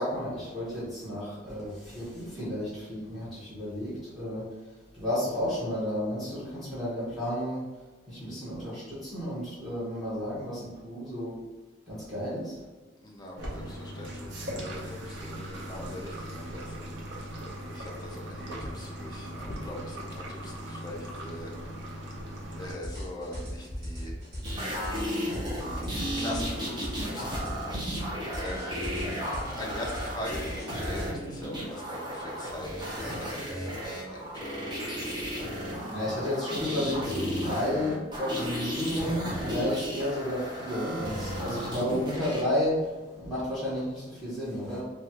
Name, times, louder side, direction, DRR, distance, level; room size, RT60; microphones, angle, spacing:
voice 1, 0.0-4.5 4.9-7.6 8.1-11.4 11.9-12.6 25.6-25.7 35.0-35.1 35.9-44.8, left 1 dB, ahead, -10 dB, 0.9 m, -32 dB
voice 2, 13.0-21.5 21.8-22.2 22.6-24.2 25.3-28.8 29.4-35.3, left 1 dB, 20° left, -1 dB, 0.5 m, -42 dB
sound 1, 13.4-22.7, equal, 65° right, 0.6 m, -39 dB
sound 2, 22.8-31.1, equal, 50° right, 1.1 m, -38 dB
sound 3, 24.4-42.4 43.8-43.9, equal, 25° right, 0.7 m, -34 dB
3.1 x 2.2 x 2.8 m, 1.2 s
head